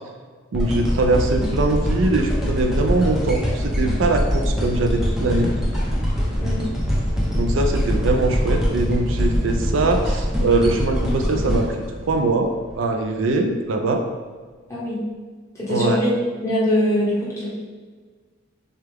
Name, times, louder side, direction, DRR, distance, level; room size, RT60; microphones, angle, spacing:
sound 1, 0.5-12.7 13.3-13.4, equal, ahead, 0.8 m, -23 dB
voice 1, 0.5-5.5 7.3-11.8 12.1-14.0 15.7-16.0, right 2 dB, 70° right, 4 dB, 0.4 m, -22 dB
voice 2, 15.5-16.2 16.4-17.5, left 1 dB, 15° left, -8 dB, 1.3 m, -22 dB
6.5 x 2.4 x 3.4 m, 1.5 s
head